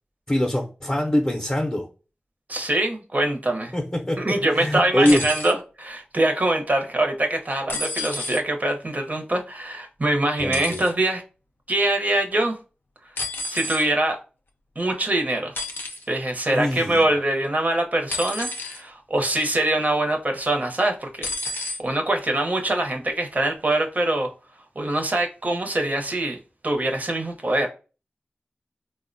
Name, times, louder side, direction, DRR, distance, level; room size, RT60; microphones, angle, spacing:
voice 1, 0.3-1.9 3.7-5.2 10.4-10.8 16.5-17.0, left 1 dB, 25° left, 0.5 m, -23 dB
voice 2, 2.5-3.7 4.2-11.2 11.7-12.6 13.5-14.2 14.8-15.5 16.1-24.3 24.8-27.7, right 1 dB, 50° right, 0.7 m, -24 dB
sound 1, 5.0-5.5 7.7-8.4 10.5-10.9 13.2-13.9 15.6-16.1 18.1-18.8 19.4-19.7 21.2-21.8 22.8-22.9, left 2 dB, 90° left, 0.4 m, -30 dB
3.6 x 2.1 x 2.5 m
cardioid pair, 40°, 4 cm